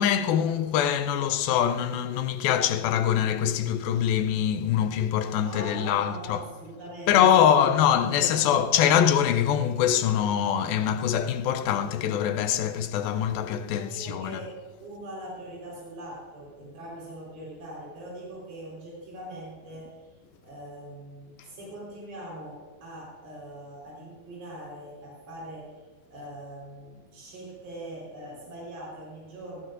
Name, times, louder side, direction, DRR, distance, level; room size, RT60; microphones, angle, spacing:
voice 1, 0.0-6.4 7.1-14.4, left 9 dB, 80° left, 2.4 m, -24 dB
voice 2, 5.5-7.7 8.1-8.4 13.7-20.1 20.4-25.8 26.1-29.6, right 1 dB, 80° right, 6.4 m, -42 dB
18.5 x 14.5 x 2.6 m
omnidirectional pair, 4.3 m